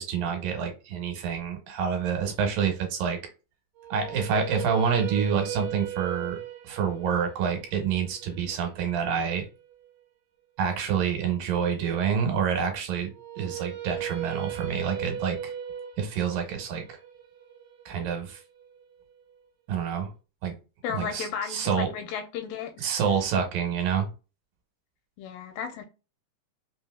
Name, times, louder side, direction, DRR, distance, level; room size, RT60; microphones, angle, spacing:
voice 1, 0.0-3.2 3.9-6.4 6.6-9.5 10.6-13.1 13.4-15.5 16.0-17.0 17.9-18.4 19.7-20.1 20.4-20.5 20.9-21.9 22.8-24.1, right 7 dB, 75° right, 2.6 m, -27 dB
sound 1, 3.8-9.9 13.1-19.2, right 10 dB, 90° right, 2.4 m, -38 dB
voice 2, 20.8-23.0 25.2-25.8, left 7 dB, 85° left, 2.3 m, -34 dB
5.4 x 2.7 x 2.2 m
omnidirectional pair, 4.2 m